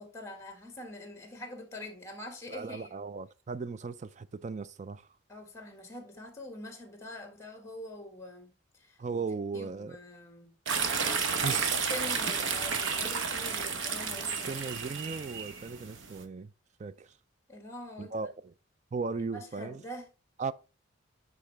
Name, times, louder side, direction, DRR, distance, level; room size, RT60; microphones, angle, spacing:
voice 1, 0.0-2.9 5.3-9.2 9.5-10.5 11.3-11.6 11.9-14.6 17.5-18.2 19.2-20.1, left 1 dB, 15° left, 1.6 m, -44 dB
voice 2, 2.5-5.1 9.0-10.0 11.4-11.8 12.3-12.4 14.4-16.5 16.8-17.1 18.0-18.5 18.9-19.8 20.4-20.5, right 4 dB, 35° right, 0.3 m, -37 dB
sound 1, 10.7-16.2, right 5 dB, 65° right, 0.9 m, -32 dB
9.5 x 3.7 x 3.3 m
head